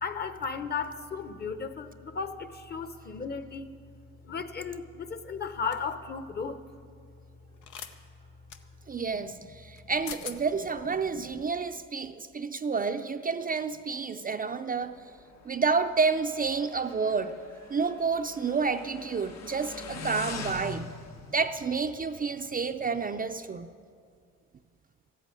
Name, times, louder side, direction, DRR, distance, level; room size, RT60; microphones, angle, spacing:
voice 1, 0.0-3.7 4.2-6.6 9.1-9.2 11.1-11.4, left 5 dB, 35° left, 10 dB, 0.9 m, -35 dB
sound 1, 5.7-5.9 7.6-7.9 8.5-8.6 9.8-9.9 10.1-10.4, left 8 dB, 85° left, 0.9 m, -41 dB
voice 2, 8.9-15.0 15.5-17.3 17.7-20.9 21.3-23.7, right 5 dB, 30° right, 7 dB, 0.5 m, -29 dB
Motorcycle, 14.7-23.0, left 4 dB, 60° left, 1.2 m, -44 dB
14.0 x 8.3 x 9.0 m, 2.3 s
cardioid pair, 90°, 30 cm